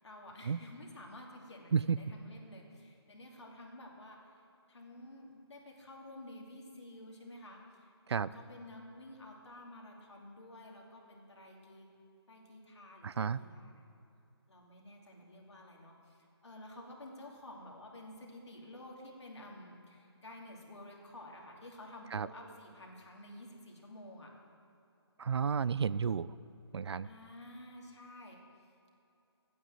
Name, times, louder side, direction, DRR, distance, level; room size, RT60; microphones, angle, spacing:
voice 1, 0.0-4.4 4.7-11.9 12.3-13.8 14.5-24.3 27.0-28.4, left 1 dB, 90° left, -1 dB, 2.8 m, -51 dB
voice 2, 13.0-13.4 22.1-22.3 25.2-26.3 26.7-27.1, right 6 dB, 75° right, 18 dB, 0.4 m, -32 dB
10.0 x 9.3 x 7.6 m, 2.7 s
hypercardioid pair, 165°, 14 cm